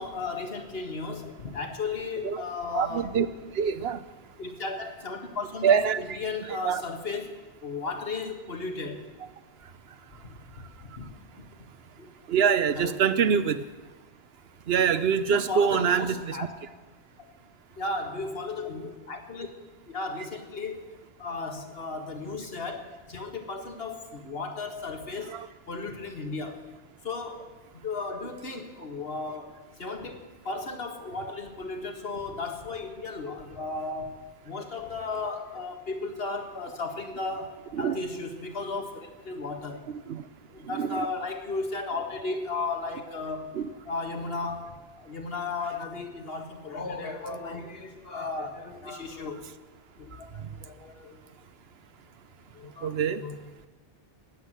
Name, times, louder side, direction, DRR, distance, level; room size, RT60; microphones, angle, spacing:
voice 1, 0.0-3.1 4.4-7.4 7.6-9.1 11.0-11.1 11.4-11.5 12.0-12.1 12.8-13.0 15.3-16.5 17.8-19.5 19.9-20.8 21.2-25.3 25.7-26.6 27.0-27.4 27.7-37.5 37.8-39.8 40.5-43.6 43.9-49.5 50.0-51.2 52.5-53.4, left 3 dB, 70° left, 4 dB, 1.9 m, -35 dB
voice 2, 2.7-3.3 3.5-4.0 5.6-6.0 6.4-6.8 12.3-13.6 14.7-16.4 25.3-25.5 37.7-38.0 40.1-40.2 40.7-41.1 43.5-43.7 52.8-53.2, right 7 dB, 80° right, 13 dB, 1.0 m, -25 dB
19.5 x 8.3 x 7.6 m, 1.2 s
omnidirectional pair, 1.0 m